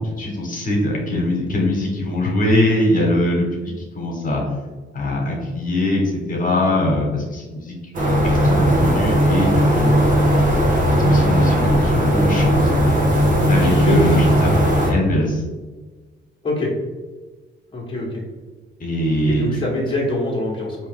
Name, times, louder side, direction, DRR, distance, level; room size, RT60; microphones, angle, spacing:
voice 1, 0.0-4.4 4.9-7.7 8.4-9.9 11.0-12.7 13.5-14.5 14.9-15.4 18.8-19.6, left 1 dB, 45° left, -1 dB, 1.3 m, -22 dB
sound 1, 7.9-14.9, equal, 40° right, 1.2 m, -17 dB
voice 2, 13.6-14.2 16.4-16.7 17.7-18.2 19.3-20.8, left 2 dB, 25° left, -4 dB, 1.2 m, -24 dB
4.7 x 2.9 x 3.6 m, 1.3 s
cardioid pair, 90°, 20 cm